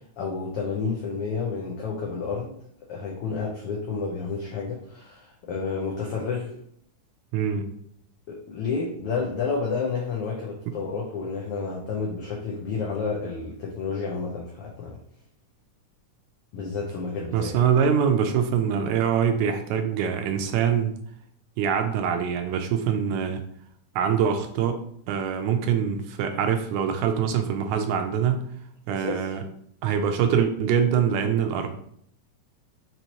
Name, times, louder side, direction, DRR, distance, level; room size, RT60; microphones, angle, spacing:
voice 1, 0.2-2.6 2.9-6.6 8.3-15.0 16.5-17.5 28.9-29.4, left 4 dB, 85° left, -2 dB, 1.2 m, -30 dB
voice 2, 7.3-7.7 17.3-21.0 21.6-23.4 24.0-24.8 25.1-28.4 28.9-29.4 29.8-31.8, right 7 dB, 80° right, 6 dB, 1.8 m, -24 dB
5.4 x 3.0 x 2.9 m, 0.68 s
omnidirectional pair, 3.4 m